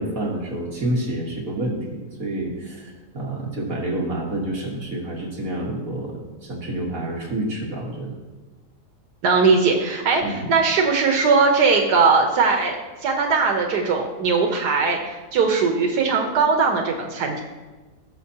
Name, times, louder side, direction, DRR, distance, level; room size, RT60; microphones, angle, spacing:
voice 1, 0.0-8.1 10.2-10.5, right 1 dB, 55° right, -3 dB, 1.9 m, -28 dB
voice 2, 9.2-12.8 13.0-17.4, right 4 dB, 80° right, 3 dB, 1.5 m, -19 dB
18.0 x 6.6 x 2.8 m, 1.2 s
omnidirectional pair, 1.7 m